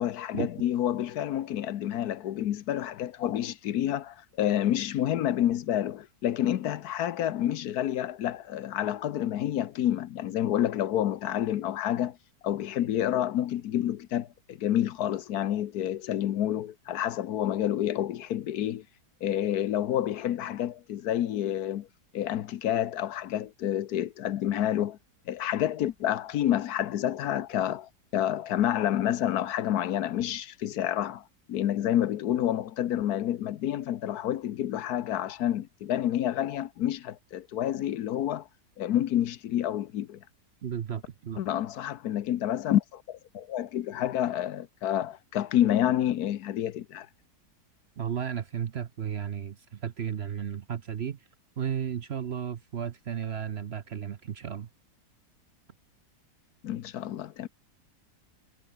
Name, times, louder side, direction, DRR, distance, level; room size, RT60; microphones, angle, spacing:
voice 1, 0.0-12.2 12.4-18.8 19.2-21.9 22.1-25.0 25.3-38.5 38.8-40.2 41.4-47.1 56.6-57.5, left 11 dB, 75° left, 1.3 m, -29 dB
voice 2, 40.6-41.4 48.0-51.3 51.6-54.7, right 8 dB, 50° right, 0.9 m, -34 dB
omnidirectional pair, 1.7 m